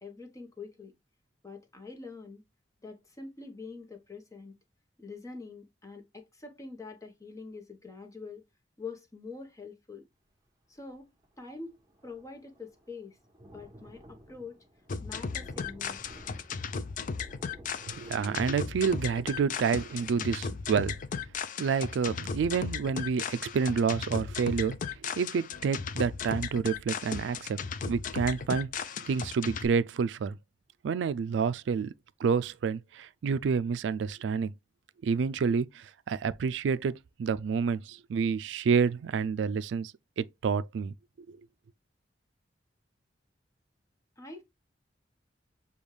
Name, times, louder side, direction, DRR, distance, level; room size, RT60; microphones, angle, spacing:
voice 1, 0.0-0.9 1.4-2.4 2.8-4.6 5.0-8.4 8.8-10.1 10.7-11.1 11.4-11.8 12.0-13.2 13.5-14.6 15.0-16.1 44.2-44.4, left 4 dB, 20° left, 0.9 m, -45 dB
Thunder, 10.9-11.0 11.2-23.8 24.3-24.4 24.7-24.8, equal, 20° right, 1.0 m, -54 dB
sound 1, 14.9-29.6, left 5 dB, 45° left, 0.4 m, -36 dB
voice 2, 17.9-21.0 21.6-24.7 25.0-27.6 27.9-30.4 30.8-31.9 32.2-34.5 35.0-40.9 41.3-41.4, right 6 dB, 75° right, 0.3 m, -29 dB
6.9 x 2.3 x 3.1 m
head